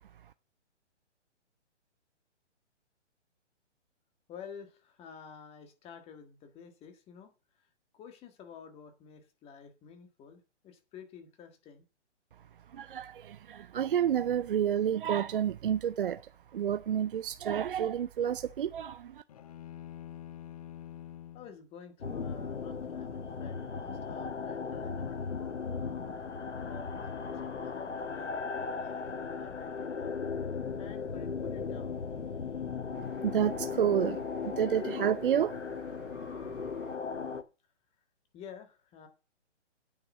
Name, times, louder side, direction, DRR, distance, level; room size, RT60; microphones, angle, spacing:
voice 1, 4.3-7.3 7.9-11.8 21.3-25.6 26.5-29.0 29.4-30.2 30.8-32.0 38.3-39.1, left 7 dB, 15° left, 1.7 m, -50 dB
voice 2, 12.7-16.2 16.5-19.2 33.2-35.6, right 9 dB, 50° right, 0.5 m, -30 dB
sound 1, 19.3-21.6, left 11 dB, 30° left, 0.6 m, -46 dB
sound 2, 22.0-37.4, left 5 dB, 75° left, 1.3 m, -37 dB
9.4 x 5.9 x 7.1 m
figure-of-eight pair, 135°, 36 cm